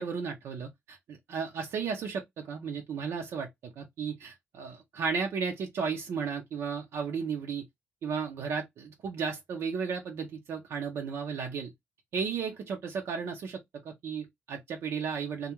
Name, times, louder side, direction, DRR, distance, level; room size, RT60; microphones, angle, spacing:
voice 1, 0.0-3.5 3.8-7.6 8.0-11.7 12.1-13.6 13.8-15.5, right 6 dB, 75° right, 0.6 m, -34 dB
2.3 x 2.2 x 2.8 m
cardioid pair, 115°, 5 cm